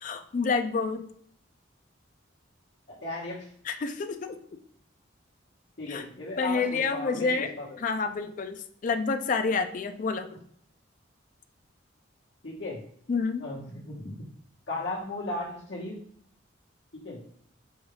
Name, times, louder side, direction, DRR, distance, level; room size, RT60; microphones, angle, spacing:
voice 1, 0.0-1.0 3.6-4.4 5.9-6.0 6.4-7.5 7.8-10.3 13.1-13.4, left 4 dB, 40° left, 8 dB, 0.3 m, -28 dB
voice 2, 2.9-3.4 5.8-7.8 12.4-12.8 13.4-14.2 14.7-16.0 17.0-17.2, left 2 dB, 55° left, -8 dB, 1.0 m, -36 dB
5.4 x 2.3 x 3.2 m, 0.63 s
head